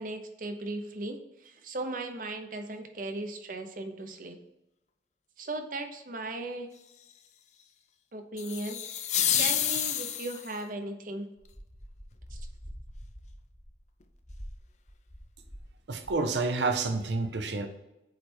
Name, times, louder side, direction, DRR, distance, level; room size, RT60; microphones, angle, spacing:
voice 1, 0.0-4.4 5.4-6.7 8.1-11.3 12.3-12.4, right 2 dB, 50° right, 5 dB, 0.8 m, -37 dB
sound 1, 8.4-10.6, left 10 dB, 40° left, 0.4 m, -29 dB
sound 2, 11.4-15.7 16.0-16.4, equal, 10° left, 0.8 m, -46 dB
voice 2, 15.9-17.7, right 3 dB, 80° right, 6 dB, 0.7 m, -29 dB
7.7 x 3.3 x 4.4 m, 0.94 s
head